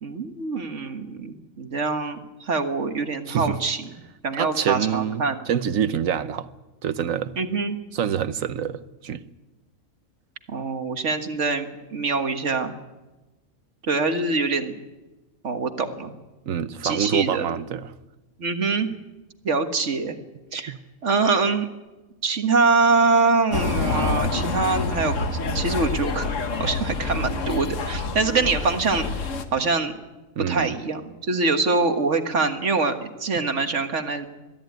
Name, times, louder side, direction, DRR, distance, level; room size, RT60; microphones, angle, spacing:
voice 1, 0.0-3.8 4.2-5.4 7.4-7.8 10.5-12.7 13.9-14.8 15.4-16.1 16.8-17.5 18.4-18.9 19.4-20.2 20.5-20.7 21.0-21.7 22.2-25.2 25.5-26.3 26.6-29.1 29.5-29.9 30.5-34.3, right 4 dB, 65° right, 1.9 m, -24 dB
voice 2, 3.3-3.6 4.4-6.5 6.8-7.3 7.9-9.2 16.5-17.9 20.7-20.8 30.4-30.8, right 8 dB, 90° right, 1.3 m, -26 dB
sound 1, 23.5-29.4, left 3 dB, 70° left, 1.7 m, -27 dB
22.5 x 14.0 x 9.3 m
omnidirectional pair, 1.3 m